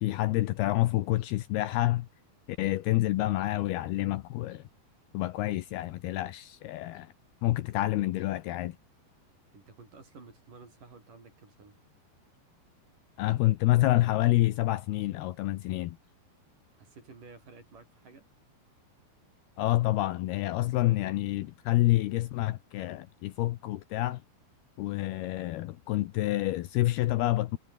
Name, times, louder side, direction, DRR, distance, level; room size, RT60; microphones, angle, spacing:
voice 1, 0.0-2.1 2.5-4.6 5.1-7.1 7.4-8.8 13.2-16.0 19.6-24.2 24.8-27.6, left 16 dB, 75° left, 2.6 m, -28 dB
voice 2, 9.5-11.8 16.7-18.3, right 4 dB, 50° right, 7.6 m, -52 dB
omnidirectional pair, 5.0 m